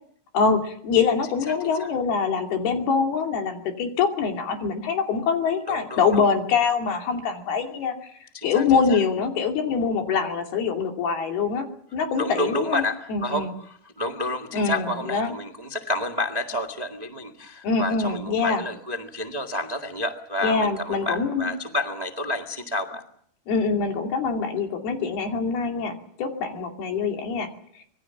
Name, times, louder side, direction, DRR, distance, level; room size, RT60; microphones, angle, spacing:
voice 1, 0.3-7.9 8.4-11.7 11.9-12.8 13.1-13.5 14.5-15.3 17.6-18.6 20.4-21.5 23.5-27.5, left 5 dB, 90° left, 4 dB, 4.6 m, -24 dB
voice 2, 5.7-6.2 8.3-9.0 12.2-23.0, left 1 dB, 25° right, 6 dB, 0.8 m, -30 dB
25.5 x 21.0 x 7.2 m, 0.64 s
omnidirectional pair, 4.3 m